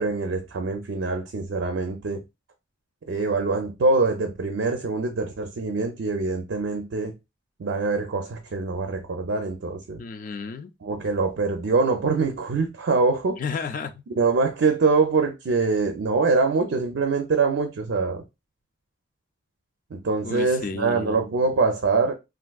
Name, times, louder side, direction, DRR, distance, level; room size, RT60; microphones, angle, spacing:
voice 1, 0.0-2.2 3.1-7.2 7.6-10.0 10.8-13.4 14.2-18.2 19.9-22.1, right 4 dB, 70° right, 0.4 m, -24 dB
voice 2, 10.0-10.7 13.4-13.9 20.2-21.2, left 5 dB, 45° left, 0.3 m, -32 dB
3.4 x 2.4 x 2.3 m
head